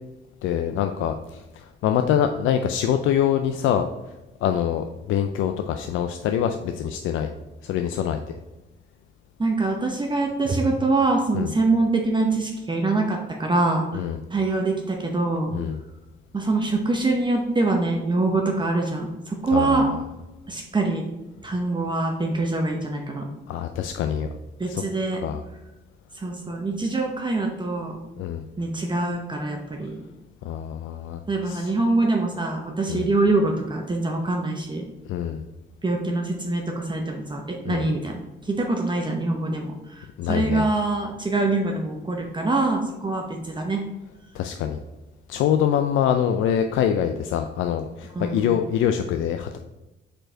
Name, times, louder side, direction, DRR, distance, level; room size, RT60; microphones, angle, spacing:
voice 1, 0.4-3.9 4.4-7.3 7.6-8.2 11.3-11.5 13.9-14.2 15.5-15.8 19.5-20.0 23.2-24.3 24.6-24.8 25.2-25.4 28.2-28.4 30.4-31.7 32.9-33.1 35.1-35.4 37.6-37.9 40.2-40.7 44.3-44.8 45.3-49.6, left 9 dB, 80° left, 6 dB, 0.4 m, -25 dB
voice 2, 9.4-14.0 14.3-15.5 16.3-19.9 20.5-21.1 21.4-23.3 24.6-25.2 26.2-28.0 28.6-30.0 31.3-34.8 35.8-38.2 38.4-43.8 48.1-48.5, right 2 dB, 25° right, 1 dB, 0.8 m, -24 dB
5.1 x 4.4 x 4.4 m, 1.0 s
cardioid pair, 90°, 20 cm